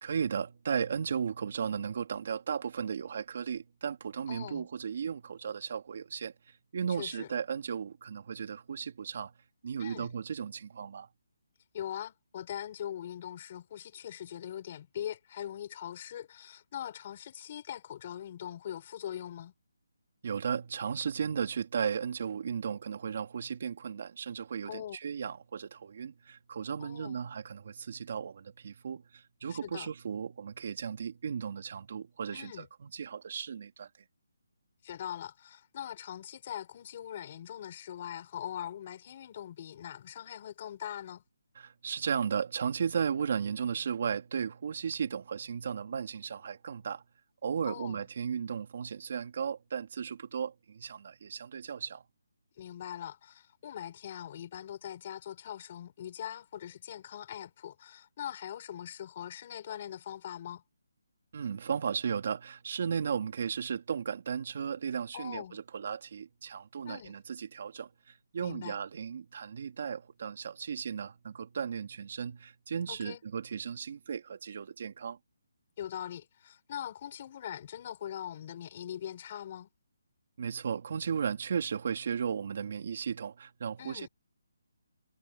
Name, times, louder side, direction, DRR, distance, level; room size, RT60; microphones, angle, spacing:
voice 1, 0.0-6.3 6.7-9.3 9.6-11.1 20.2-33.9 41.6-47.0 47.4-52.0 61.3-75.2 80.4-84.1, right 7 dB, 40° right, 2.9 m, -35 dB
voice 2, 4.3-4.7 7.0-7.3 9.8-10.1 11.7-19.5 24.7-25.0 26.8-27.2 29.5-29.9 32.3-32.7 34.8-41.2 47.6-48.0 52.6-60.6 65.1-65.6 66.8-67.1 68.4-68.8 72.9-73.2 75.8-79.7 83.8-84.1, left 10 dB, 30° left, 6.4 m, -41 dB
hypercardioid pair, 175°, 0 cm